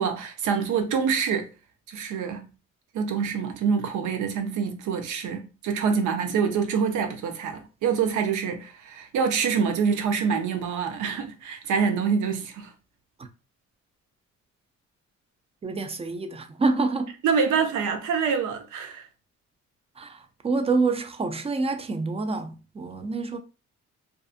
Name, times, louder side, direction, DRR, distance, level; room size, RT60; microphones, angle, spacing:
voice 1, 0.0-1.5 1.9-2.4 2.9-12.7 17.2-19.0, right 6 dB, 80° right, 0.6 m, -26 dB
voice 2, 15.6-17.1 20.0-23.4, right 3 dB, 20° right, 0.4 m, -27 dB
2.5 x 2.4 x 2.4 m
cardioid pair, 90°, 30 cm